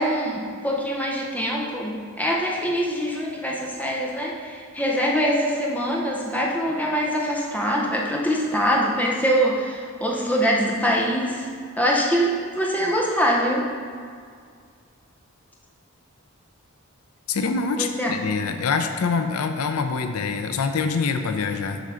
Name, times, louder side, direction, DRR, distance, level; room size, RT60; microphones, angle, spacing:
voice 1, 0.0-11.4 11.8-13.7 17.8-18.1, equal, 5° left, -2 dB, 0.7 m, -24 dB
voice 2, 17.3-21.8, left 4 dB, 85° left, 7 dB, 0.5 m, -25 dB
8.2 x 3.9 x 5.6 m, 2.1 s
head